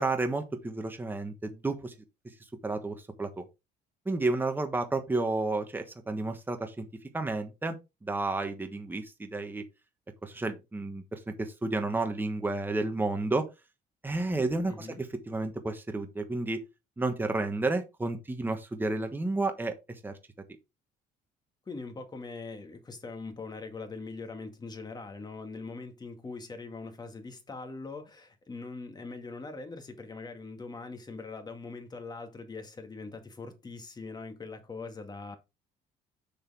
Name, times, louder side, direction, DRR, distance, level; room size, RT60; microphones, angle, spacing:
voice 1, 0.0-1.9 2.6-3.4 4.0-6.9 7.1-7.8 8.0-9.6 10.2-13.4 14.0-16.6 17.0-19.8 20.0-20.1, right 2 dB, 10° right, 1.3 m, -31 dB
voice 2, 14.7-15.0 21.7-35.4, left 3 dB, 25° left, 1.9 m, -42 dB
6.6 x 6.6 x 3.5 m
cardioid pair, 110°, 17 cm